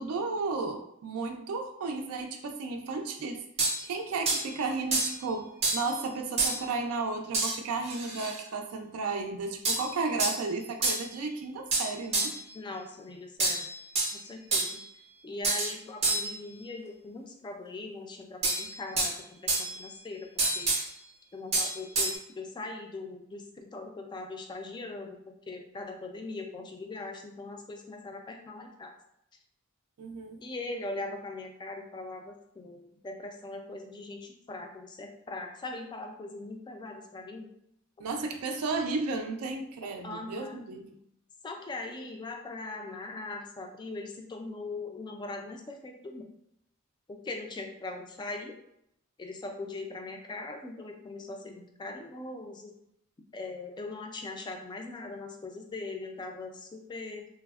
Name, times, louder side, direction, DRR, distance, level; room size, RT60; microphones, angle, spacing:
voice 1, 0.0-3.4 3.8-12.4 30.0-30.4 38.0-40.9, right 3 dB, 80° right, 4 dB, 0.4 m, -33 dB
sound 1, 3.6-3.8 4.3-4.5 4.9-5.2 5.6-5.9 6.4-6.6 7.3-7.6 7.8-8.4 9.6-9.9 10.2-10.4 10.8-11.0 11.7-12.4 13.4-14.2 14.5-14.8 15.4-15.7 16.0-16.4 18.4-19.1 19.5-19.8 20.4-20.9 21.5-22.2, right 3 dB, 30° right, 0.6 m, -28 dB
voice 2, 12.5-13.7 14.1-14.8 15.2-20.7 21.3-28.9 30.4-37.5 39.8-40.6 41.4-46.3 47.1-48.6 49.2-52.7 53.3-57.3, left 2 dB, 20° left, 3 dB, 0.3 m, -40 dB
3.2 x 2.0 x 2.3 m, 0.77 s
head